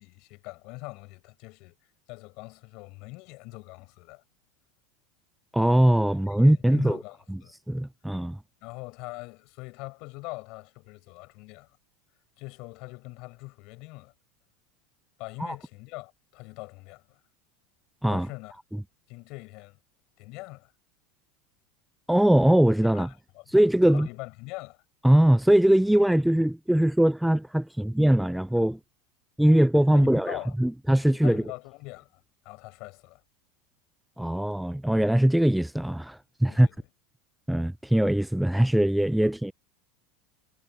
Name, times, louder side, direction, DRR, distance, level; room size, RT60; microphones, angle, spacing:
voice 1, 0.0-4.2 6.4-7.5 8.6-11.8 12.4-14.1 15.2-17.2 18.1-18.5 19.1-19.8 20.2-20.7 22.9-23.5 23.8-24.8 29.9-30.5 31.1-33.2 36.5-36.8, left 25 dB, 55° left, 7.6 m, -42 dB
voice 2, 5.5-7.0 7.3-7.4 7.7-8.4 15.4-15.6 18.0-18.3 22.1-23.1 23.5-24.1 25.0-28.8 29.4-31.4 34.2-36.7 37.5-39.5, right 1 dB, 5° right, 0.4 m, -21 dB
supercardioid pair, 125°, 0 cm